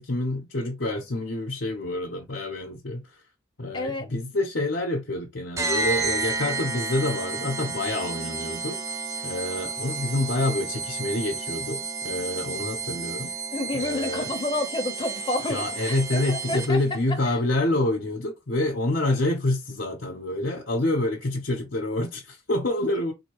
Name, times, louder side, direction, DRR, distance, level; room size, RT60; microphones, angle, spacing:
voice 1, 0.0-3.1 3.6-8.8 9.2-13.3 13.7-14.3 15.5-23.1, left 2 dB, 65° left, 0.9 m, -27 dB
voice 2, 3.7-4.1 13.5-16.8 17.2-17.4, left 2 dB, 25° left, 0.9 m, -29 dB
sound 1, 5.6-16.9, right 4 dB, 15° right, 0.4 m, -31 dB
3.8 x 2.7 x 3.0 m
head